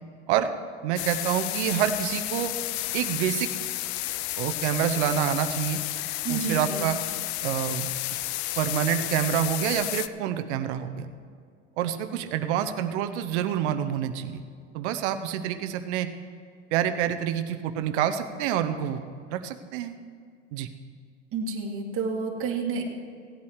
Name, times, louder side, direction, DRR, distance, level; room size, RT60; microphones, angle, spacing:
voice 1, 0.8-2.5 2.9-3.5 4.4-5.8 6.3-7.0 7.4-7.9 8.6-11.1 11.8-14.4 14.7-16.1 16.7-19.0 19.3-20.0 20.5-20.7, right 10 dB, 65° right, 8 dB, 0.9 m, -27 dB
sound 1, 1.0-10.1, left 16 dB, 55° left, 0.6 m, -31 dB
voice 2, 6.2-6.9 21.3-22.8, right 4 dB, 35° right, -1 dB, 2.2 m, -30 dB
17.0 x 8.5 x 4.7 m, 2.2 s
hypercardioid pair, 95°, 38 cm